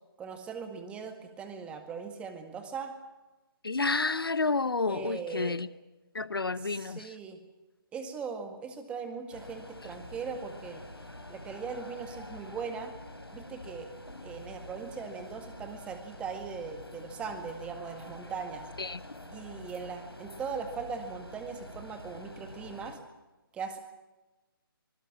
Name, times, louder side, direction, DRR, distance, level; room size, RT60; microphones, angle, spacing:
voice 1, 0.2-2.9 4.9-5.6 6.6-7.4 7.9-10.8 11.3-12.9 13.3-13.9 14.2-18.7 19.3-23.0 23.5-23.8, right 5 dB, 10° right, 1.9 m, -39 dB
voice 2, 3.6-5.7 6.1-7.1 18.8-19.0, left 3 dB, 70° left, 1.0 m, -30 dB
sound 1, 9.3-23.0, left 1 dB, 85° left, 4.3 m, -47 dB
25.0 x 20.0 x 7.5 m
figure-of-eight pair, 145°, 13 cm